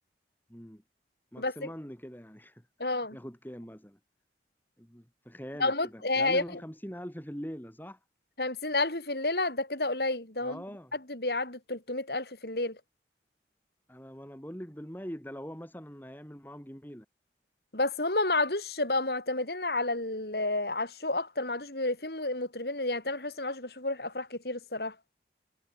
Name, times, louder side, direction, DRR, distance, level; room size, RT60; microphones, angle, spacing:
voice 1, 0.5-0.8 1.3-2.7 3.1-4.0 4.8-8.0 10.4-10.9 13.9-17.1, equal, 10° left, 4.4 m, -43 dB
voice 2, 1.4-1.7 2.8-3.2 5.6-6.6 8.4-10.6 10.9-12.8 17.7-24.9, left 2 dB, 65° left, 4.9 m, -30 dB
head